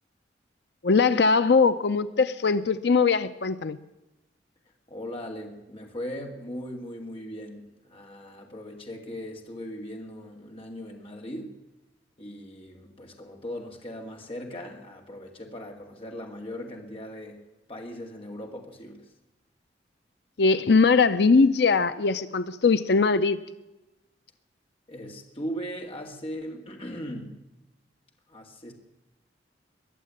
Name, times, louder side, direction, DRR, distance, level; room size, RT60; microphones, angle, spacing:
voice 1, 0.8-3.8 20.4-23.4, left 4 dB, 65° left, 13 dB, 0.6 m, -21 dB
voice 2, 4.9-11.5 12.2-17.4 17.7-19.1 24.9-27.4 28.3-28.7, equal, 30° left, 1 dB, 2.2 m, -39 dB
22.0 x 7.5 x 8.8 m, 1.0 s
head